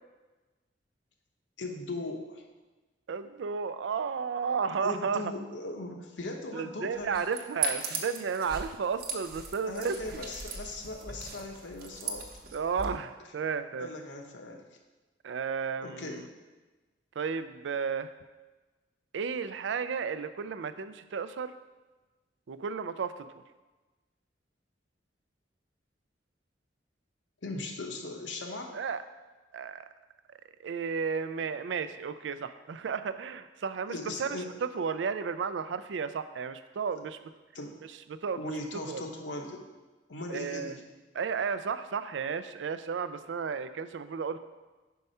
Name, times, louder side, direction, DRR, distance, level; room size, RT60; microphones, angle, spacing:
voice 1, 1.6-2.4 4.8-7.2 9.6-12.3 13.8-14.6 15.8-16.3 27.4-28.8 33.9-34.5 37.5-37.8 38.4-39.6 40.1-40.9, left 2 dB, 80° left, 2 dB, 0.9 m, -39 dB
voice 2, 3.1-5.2 6.5-10.0 12.5-13.9 15.2-16.3 17.2-18.1 19.1-21.5 22.5-23.1 28.7-29.0 29.5-29.9 30.6-37.2 38.1-38.5 38.9-39.0 40.3-40.8 41.1-44.4, right 6 dB, 80° right, 12 dB, 0.4 m, -33 dB
sound 1, 7.0-12.9, right 4 dB, 55° right, 0.8 m, -38 dB
5.4 x 4.6 x 5.5 m, 1.2 s
head